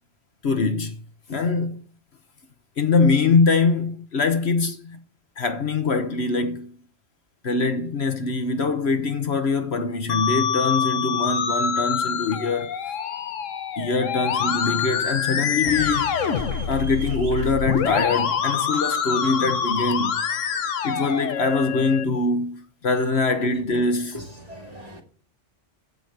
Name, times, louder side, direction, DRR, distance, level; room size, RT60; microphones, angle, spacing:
voice 1, 0.4-0.9 1.3-1.8 2.8-5.0 5.4-6.8 7.4-12.7 13.8-16.2 16.6-20.3 20.8-24.2, left 4 dB, 60° left, 1.4 m, -23 dB
Musical instrument, 10.1-22.0, left 7 dB, 80° left, 1.3 m, -26 dB
sound 1, 15.6-20.7, right 3 dB, 55° right, 1.7 m, -41 dB
voice 2, 24.1-25.0, equal, 30° right, 2.5 m, -39 dB
14.5 x 5.2 x 7.9 m
omnidirectional pair, 1.3 m